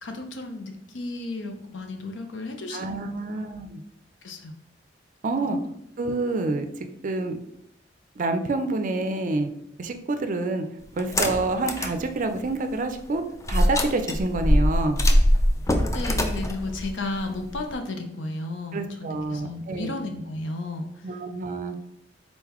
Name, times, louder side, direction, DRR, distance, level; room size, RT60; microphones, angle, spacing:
voice 1, 0.0-3.2 4.2-4.6 15.9-21.2, left 2 dB, 70° left, 5 dB, 0.6 m, -33 dB
voice 2, 2.7-3.8 5.2-5.6 6.0-7.3 8.2-9.5 9.8-10.7 10.9-15.0 18.7-19.9 21.0-21.8, right 2 dB, 45° right, 7 dB, 0.4 m, -27 dB
sound 1, 11.0-12.0 12.4-12.5 13.4-17.7, equal, 15° left, 0.4 m, -22 dB
4.0 x 3.8 x 3.0 m, 0.79 s
head